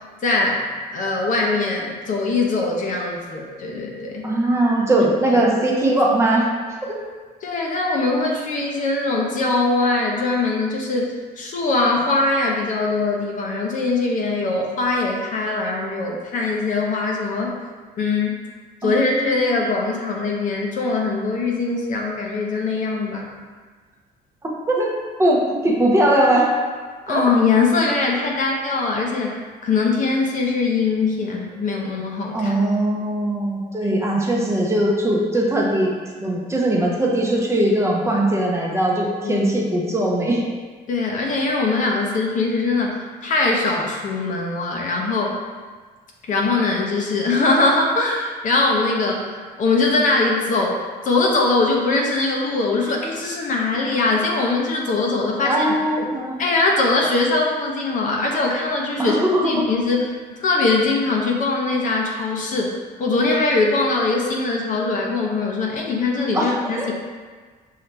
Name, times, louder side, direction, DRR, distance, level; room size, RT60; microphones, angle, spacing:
voice 1, 0.2-0.6 0.9-4.3 5.0-5.4 7.4-17.6 18.0-18.4 18.8-23.3 27.1-32.5 33.8-34.0 39.2-39.5 40.0-40.1 40.9-45.4 46.2-50.8 51.0-55.8 56.4-60.1 60.4-62.7 63.0-66.9, left 3 dB, 50° left, -1 dB, 0.8 m, -21 dB
voice 2, 4.2-6.5 6.9-7.0 18.8-19.3 24.7-24.9 25.2-26.5 27.1-27.2 32.3-35.9 36.2-40.4 55.4-56.3 59.0-59.7 66.3-66.9, right 1 dB, 15° right, -3 dB, 0.8 m, -20 dB
5.7 x 2.8 x 3.3 m, 1.5 s
cardioid pair, 110°, 17 cm